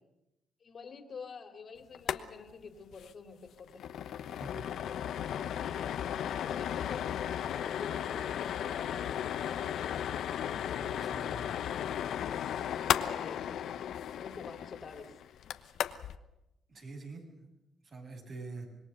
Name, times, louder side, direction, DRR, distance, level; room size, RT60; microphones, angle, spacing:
voice 1, 0.6-3.8 5.6-5.8 6.1-7.1 7.4-10.0 12.9-13.4 14.1-15.2, left 5 dB, 50° left, 6 dB, 2.7 m, -48 dB
Boiling Water, 1.9-2.2 2.5-2.6 2.9-3.1 3.5-16.2, left 9 dB, 70° left, 1.0 m, -35 dB
voice 2, 10.7-11.5 16.7-17.5 17.8-18.7, right 3 dB, 50° right, 2 dB, 7.5 m, -46 dB
26.0 x 20.5 x 6.8 m, 0.92 s
cardioid pair, 90°, 0 cm